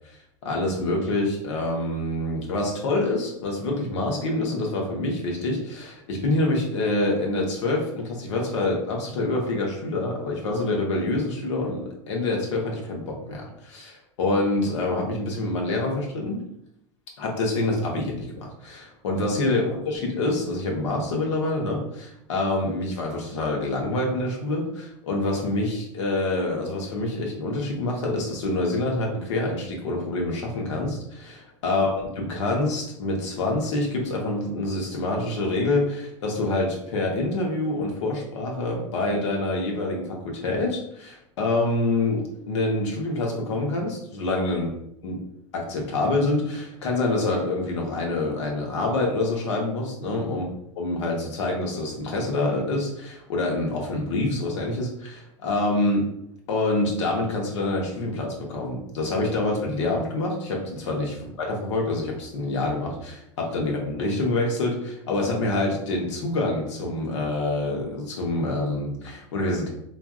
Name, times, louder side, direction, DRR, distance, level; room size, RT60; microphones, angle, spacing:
voice 1, 0.4-16.4 17.2-44.7 45.0-45.2 45.5-50.4 50.8-56.1 56.5-69.7, left 2 dB, 75° left, 0 dB, 0.9 m, -26 dB
3.4 x 2.6 x 2.3 m, 0.75 s
hypercardioid pair, 90°, 15 cm